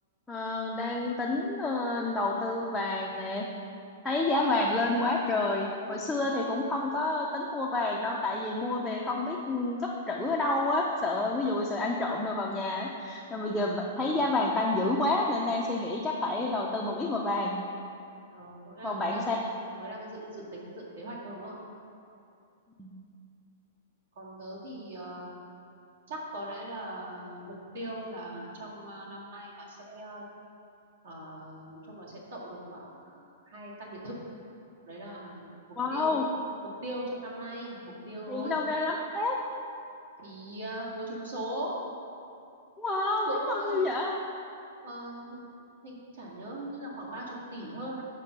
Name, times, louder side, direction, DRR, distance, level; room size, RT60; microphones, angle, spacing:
voice 1, 0.3-3.5 4.0-17.6 18.8-19.4 22.8-22.9 35.8-36.2 38.3-39.4 42.8-44.2, left 2 dB, 5° left, -4 dB, 0.4 m, -29 dB
voice 2, 18.3-21.6 24.2-25.3 26.1-30.2 31.0-34.2 34.9-36.2 36.8-38.6 40.2-41.7 43.3-43.9 44.8-45.5 45.8-48.0, right 1 dB, 70° right, -4 dB, 2.0 m, -40 dB
7.5 x 5.2 x 6.6 m, 2.5 s
hypercardioid pair, 175°, 0 cm